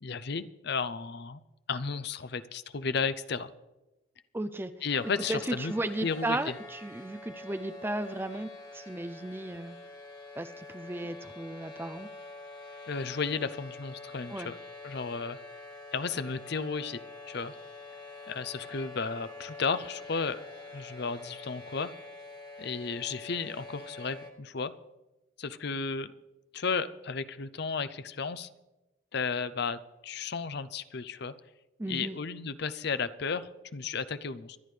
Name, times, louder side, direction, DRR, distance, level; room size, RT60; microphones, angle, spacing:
voice 1, 0.0-1.4 1.7-3.5 4.8-5.7 6.0-6.4 12.9-14.5 14.8-15.4 15.9-17.0 17.3-17.5 18.3-20.4 20.7-21.9 22.6-24.7 25.4-26.1 26.5-28.5 29.1-31.3 31.9-34.6, left 5 dB, 55° left, 14 dB, 0.6 m, -33 dB
voice 2, 4.3-4.7 5.3-9.8 10.4-12.1 14.3-14.5 31.8-32.2, right 1 dB, 10° right, 10 dB, 0.4 m, -35 dB
sound 1, 4.9-24.3, left 3 dB, 20° left, 1.3 m, -46 dB
sound 2, 16.5-21.4, right 3 dB, 25° right, 1.7 m, -59 dB
24.5 x 11.0 x 3.3 m, 1.0 s
head